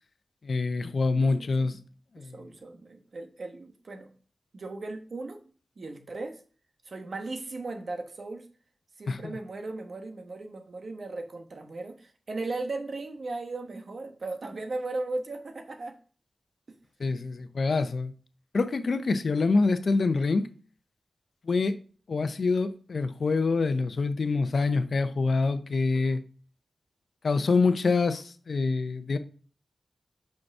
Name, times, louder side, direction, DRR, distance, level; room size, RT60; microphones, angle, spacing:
voice 1, 0.4-1.8 2.2-2.3 9.1-9.2 17.0-18.1 18.5-20.5 21.5-21.8 22.1-26.2 27.2-29.2, left 3 dB, 75° left, 0.7 m, -26 dB
voice 2, 1.1-1.8 2.2-4.1 4.5-5.4 5.8-6.4 6.8-8.5 9.0-16.0, right 2 dB, 70° right, 1.2 m, -37 dB
5.8 x 5.3 x 4.7 m
wide cardioid pair, 65°, 0 cm